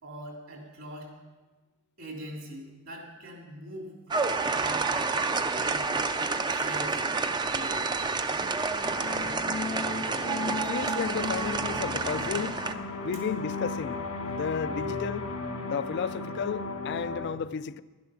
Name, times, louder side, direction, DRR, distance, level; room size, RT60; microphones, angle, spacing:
voice 1, 0.0-1.1 2.0-4.2 4.5-5.1 5.6-6.1 6.5-7.0 7.5-7.9 13.1-13.2, right 1 dB, 65° right, 3.3 m, -43 dB
sound 1, 4.1-12.7, right 4 dB, 20° right, 0.4 m, -29 dB
sound 2, 8.8-17.3, left 3 dB, 85° left, 1.8 m, -35 dB
voice 2, 10.4-12.6 13.0-15.3 15.7-17.8, left 6 dB, 55° left, 0.3 m, -33 dB
12.0 x 11.0 x 5.9 m
head